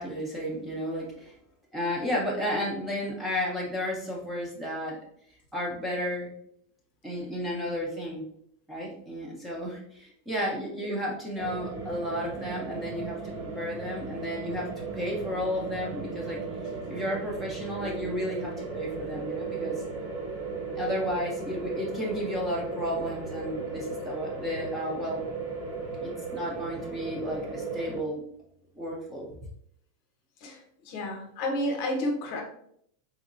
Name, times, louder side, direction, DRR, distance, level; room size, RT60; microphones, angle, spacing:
voice 1, 0.0-1.3 1.7-5.0 5.5-6.3 7.0-8.2 8.7-16.4 16.9-19.8 20.8-25.2 26.0-28.2 28.8-29.3, equal, 5° right, -3 dB, 0.5 m, -33 dB
sound 1, 11.4-28.0, right 3 dB, 80° right, 1.2 m, -36 dB
voice 2, 30.8-32.4, left 1 dB, 45° left, 2 dB, 0.7 m, -30 dB
3.8 x 2.2 x 2.4 m, 0.68 s
supercardioid pair, 170°, 0 cm